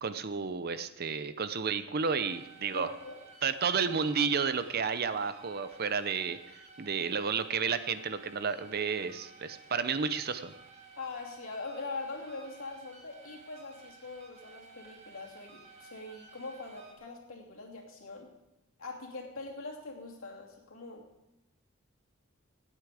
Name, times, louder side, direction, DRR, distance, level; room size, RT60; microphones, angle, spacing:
voice 1, 0.0-2.9 3.4-6.4 6.8-10.5, right 6 dB, 45° right, 12 dB, 0.7 m, -31 dB
sound 1, 2.0-16.9, right 4 dB, 30° right, 2.0 m, -54 dB
voice 2, 2.7-3.2 11.0-18.3 18.8-21.0, left 3 dB, 70° left, -1 dB, 2.8 m, -42 dB
18.0 x 8.3 x 4.9 m, 0.93 s
head